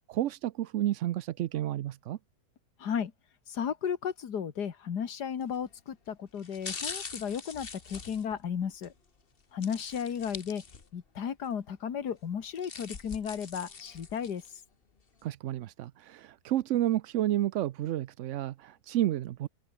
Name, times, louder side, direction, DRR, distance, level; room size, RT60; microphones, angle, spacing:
voice 1, 0.1-2.2 15.2-19.5, right 13 dB, 65° right, 0.8 m, -31 dB
voice 2, 2.8-3.1 3.5-8.9 9.5-10.6 10.9-14.4, left 7 dB, 85° left, 2.1 m, -34 dB
sound 1, 5.4-5.7 6.4-8.9 9.6-11.1 11.4-11.5 12.3-14.5 15.0-15.1, left 5 dB, 35° left, 1.6 m, -43 dB
omnidirectional pair, 1.7 m